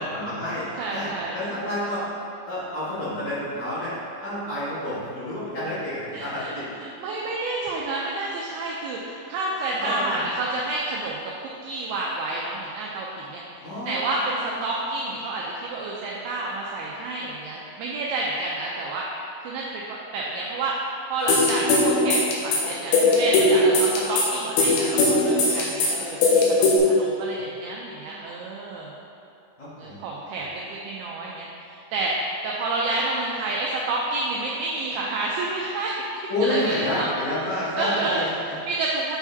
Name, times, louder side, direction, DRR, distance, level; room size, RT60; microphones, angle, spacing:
voice 1, 0.0-1.1 1.3-2.1 2.5-6.7 9.8-10.1 13.6-14.5 27.3-27.4 28.0-28.2 29.6-30.0 30.3-30.4 36.3-38.5, left 1 dB, 60° left, -13 dB, 2.1 m, -29 dB
voice 2, 0.8-1.4 6.1-6.5 6.8-19.1 19.4-28.9 29.8-36.0 36.4-37.1 37.4-39.2, right 2 dB, 85° right, -3 dB, 2.3 m, -29 dB
sound 1, 21.3-26.8, left 2 dB, 80° left, 2.5 m, -20 dB
8.7 x 4.8 x 2.7 m, 2.8 s
omnidirectional pair, 5.1 m